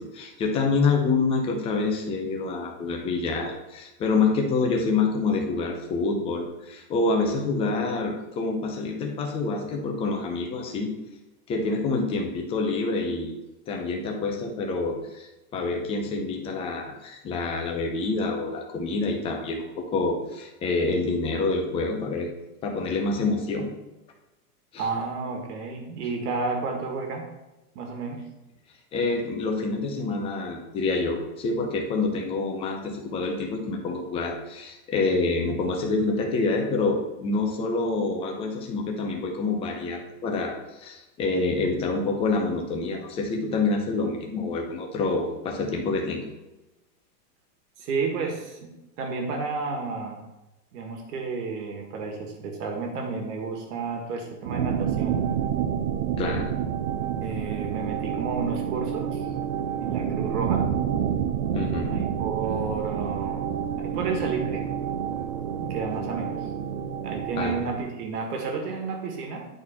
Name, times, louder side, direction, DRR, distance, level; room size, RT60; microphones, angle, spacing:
voice 1, 0.0-10.9 11.5-13.4 13.7-15.3 15.5-22.3 22.6-23.7 24.7-24.9 28.9-46.3 56.2-56.5 61.5-62.0 67.4-67.6, left 3 dB, 10° left, 2 dB, 0.6 m, -27 dB
voice 2, 24.8-27.3 27.8-28.2 47.8-48.7 49.0-50.2 50.7-55.3 57.2-59.3 59.8-60.7 61.8-63.5 63.8-64.6 65.6-66.4 67.0-69.5, right 4 dB, 75° right, 3 dB, 1.8 m, -31 dB
sound 1, 54.5-67.8, right 9 dB, 55° right, 0.7 m, -28 dB
10.5 x 4.2 x 4.3 m, 1.0 s
supercardioid pair, 160°, 48 cm